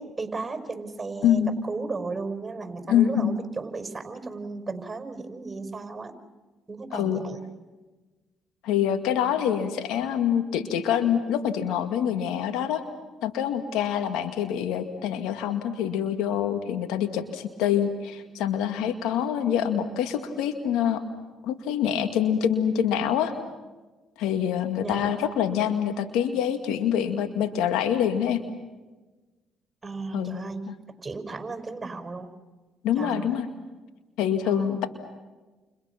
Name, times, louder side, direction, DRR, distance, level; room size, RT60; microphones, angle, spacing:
voice 1, 0.0-6.1 6.7-7.4 24.8-25.2 29.8-30.7 31.0-32.3 33.0-33.3 34.5-34.8, right 3 dB, 25° right, 6 dB, 5.3 m, -35 dB
voice 2, 1.2-1.6 2.9-3.4 6.9-7.2 8.6-12.8 13.2-21.0 21.4-23.3 24.2-28.4 30.1-30.4 30.7-30.8 32.8-33.5 34.2-34.9, left 9 dB, 80° left, 7 dB, 2.1 m, -25 dB
30.0 x 29.5 x 6.0 m, 1.2 s
hypercardioid pair, 55°, 0 cm